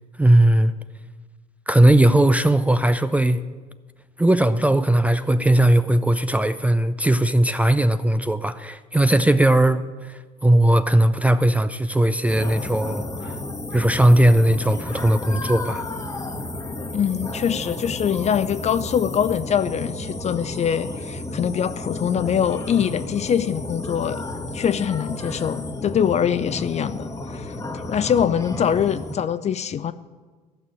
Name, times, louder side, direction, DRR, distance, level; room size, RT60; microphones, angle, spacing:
voice 1, 0.2-0.7 1.7-3.5 4.2-13.3 13.7-15.9, right 1 dB, 5° right, 0.5 m, -18 dB
sound 1, 12.3-29.2, left 2 dB, 15° left, 1.3 m, -32 dB
voice 2, 16.9-24.2 24.5-27.6 27.9-29.9, left 8 dB, 35° left, 0.6 m, -23 dB
15.0 x 6.9 x 9.3 m
figure-of-eight pair, 55°, 21 cm